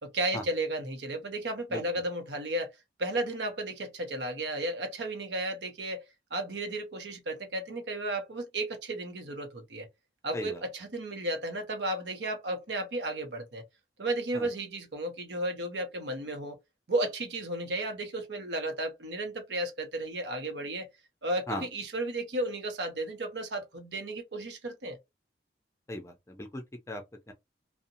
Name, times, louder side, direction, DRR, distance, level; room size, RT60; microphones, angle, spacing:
voice 1, 0.0-2.7 3.0-6.0 6.3-9.9 10.2-13.6 14.0-16.6 16.9-20.9 21.2-25.0, right 1 dB, 80° right, 0.7 m, -33 dB
voice 2, 25.9-27.3, left 1 dB, 15° left, 0.4 m, -38 dB
2.6 x 2.0 x 2.7 m
head